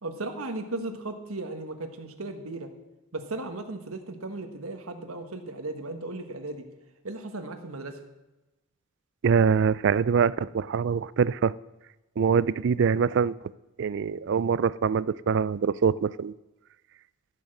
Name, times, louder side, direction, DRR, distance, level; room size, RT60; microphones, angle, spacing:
voice 1, 0.0-2.7 3.1-6.6 7.0-8.0, right 2 dB, 80° right, 6 dB, 1.5 m, -36 dB
voice 2, 9.2-11.5 12.2-13.3 13.8-16.3, right 6 dB, 55° right, 20 dB, 0.4 m, -24 dB
13.0 x 8.8 x 6.5 m, 1.0 s
head